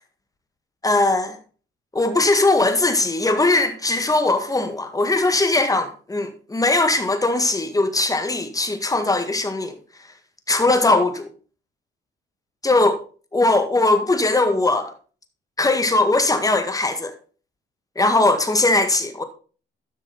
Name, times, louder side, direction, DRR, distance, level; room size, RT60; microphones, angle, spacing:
voice 1, 0.8-1.4 1.9-9.8 10.5-11.3 12.6-13.0 13.3-14.9 15.6-17.1 17.9-19.2, left 2 dB, 15° left, 1.8 m, -20 dB
12.5 x 6.1 x 3.9 m
cardioid pair, 90°, 20 cm